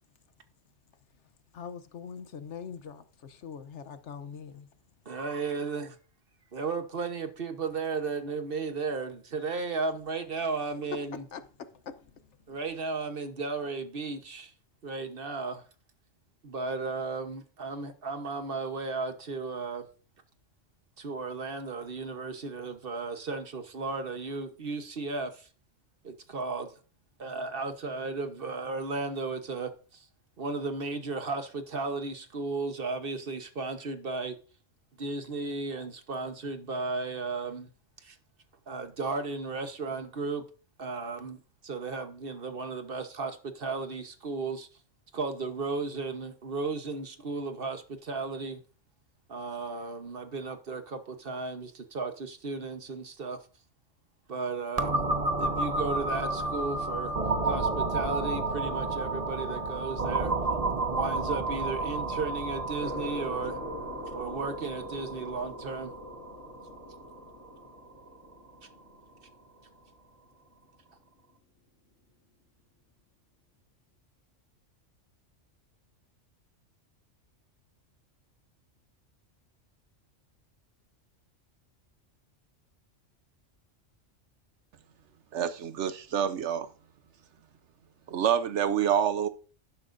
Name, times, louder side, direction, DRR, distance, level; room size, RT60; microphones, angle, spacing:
voice 1, 1.5-3.0 3.4-4.6 11.3-11.4 11.9-12.0, left 7 dB, 70° left, 1.1 m, -42 dB
voice 2, 5.0-6.0 6.5-11.3 12.5-14.5 14.8-15.6 16.4-19.9 21.0-25.5 26.0-26.7 27.2-30.1 30.4-34.4 35.0-37.7 38.0-38.2 38.7-40.5 40.8-44.7 45.1-48.6 49.3-53.4 54.3-55.0 55.4-57.1 57.4-60.6 60.9-63.6 64.1-65.9, right 3 dB, 50° right, 1.2 m, -34 dB
sound 1, 54.8-68.3, right 3 dB, 35° right, 0.9 m, -31 dB
sound 2, 62.8-69.9, left 1 dB, 85° left, 2.9 m, -44 dB
voice 3, 85.3-86.7 88.1-89.3, right 8 dB, 70° right, 1.0 m, -27 dB
11.5 x 10.5 x 2.6 m
omnidirectional pair, 1.3 m